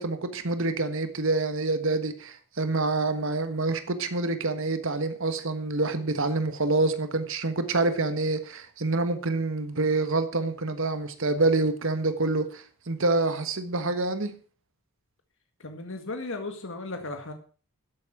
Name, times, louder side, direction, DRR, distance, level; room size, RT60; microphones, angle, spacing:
voice 1, 0.0-14.3, right 3 dB, 60° right, 9 dB, 1.5 m, -27 dB
voice 2, 15.6-17.3, left 2 dB, 60° left, 5 dB, 1.8 m, -35 dB
13.0 x 8.6 x 6.0 m, 0.39 s
head